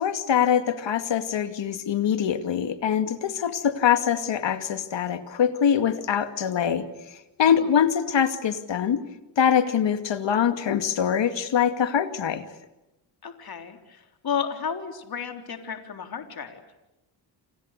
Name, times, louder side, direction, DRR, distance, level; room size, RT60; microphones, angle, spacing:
voice 1, 0.0-9.0 9.4-12.5, left 8 dB, 70° left, 9 dB, 2.5 m, -24 dB
voice 2, 13.2-16.6, left 7 dB, 50° left, 5 dB, 3.9 m, -33 dB
29.5 x 27.0 x 6.8 m, 0.98 s
cardioid pair, 90°, 46 cm